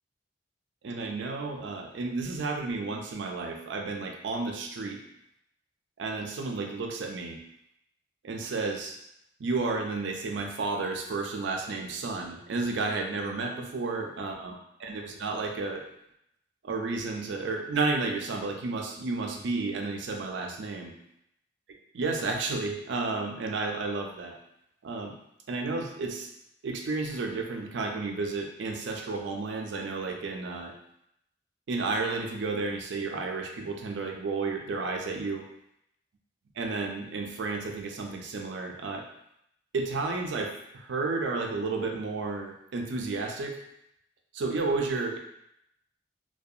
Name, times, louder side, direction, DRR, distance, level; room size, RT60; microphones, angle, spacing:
voice 1, 0.8-5.0 6.0-7.4 8.2-9.0 9.4-14.5 14.8-15.9 16.6-21.0 21.9-24.4 24.8-25.2 25.5-26.3 26.6-30.7 31.7-35.4 36.6-39.0 39.7-43.6 44.3-45.2, right 3 dB, 70° right, 2 dB, 0.4 m, -32 dB
2.3 x 2.2 x 2.7 m, 0.77 s
head